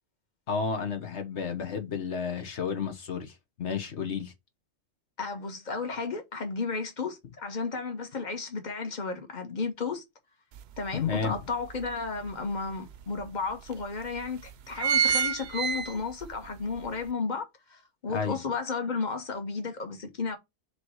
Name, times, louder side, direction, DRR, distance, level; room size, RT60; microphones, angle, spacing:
voice 1, 0.5-4.3 10.9-11.4 18.1-18.3, left 6 dB, 85° left, 1.4 m, -31 dB
voice 2, 5.2-10.0 10.8-14.4 14.7-20.4, left 4 dB, 40° left, 1.5 m, -33 dB
sound 1, 10.6-10.7 11.1-12.3 12.9-13.0 13.3-13.4 14.0-14.3 14.5-16.3 16.8-16.9, right 7 dB, 70° right, 0.8 m, -27 dB
6.9 x 3.2 x 4.5 m
omnidirectional pair, 1.1 m